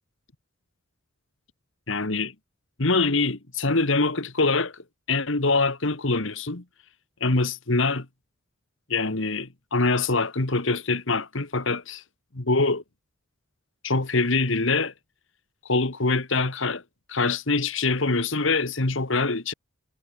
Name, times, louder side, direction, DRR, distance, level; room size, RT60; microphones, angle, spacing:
voice 1, 1.9-2.3 2.8-6.6 7.2-8.1 8.9-12.0 12.3-12.8 13.8-14.9 15.7-16.8 17.1-19.5, left 3 dB, 65° left, 1.8 m, -24 dB
head